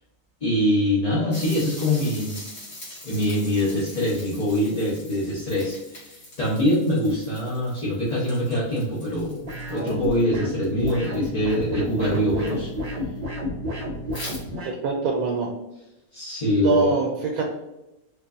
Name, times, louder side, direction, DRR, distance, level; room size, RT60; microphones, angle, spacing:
voice 1, 0.4-2.4 3.0-9.4 9.7-12.7 16.1-16.9, left 1 dB, 35° left, -8 dB, 0.7 m, -24 dB
sound 1, 1.3-12.7 14.1-14.4, left 1 dB, 65° left, 2.0 m, -43 dB
sound 2, 9.4-14.8, left 1 dB, 50° right, 0.4 m, -31 dB
voice 2, 14.8-15.5 16.6-17.4, right 4 dB, 75° right, 1 dB, 1.0 m, -23 dB
4.7 x 2.5 x 2.4 m, 0.93 s
omnidirectional pair, 1.6 m